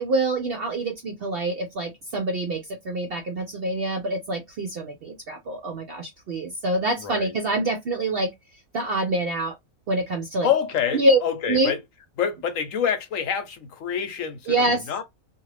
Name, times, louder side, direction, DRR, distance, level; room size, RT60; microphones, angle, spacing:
voice 1, 0.0-8.3 8.7-9.5 9.9-10.5 10.9-11.2 11.5-11.7 14.5-14.8, right 2 dB, 65° right, 0.6 m, -25 dB
voice 2, 7.0-7.4 10.4-11.8 12.2-15.0, left 8 dB, 70° left, 1.0 m, -27 dB
2.5 x 2.5 x 3.1 m
omnidirectional pair, 1.5 m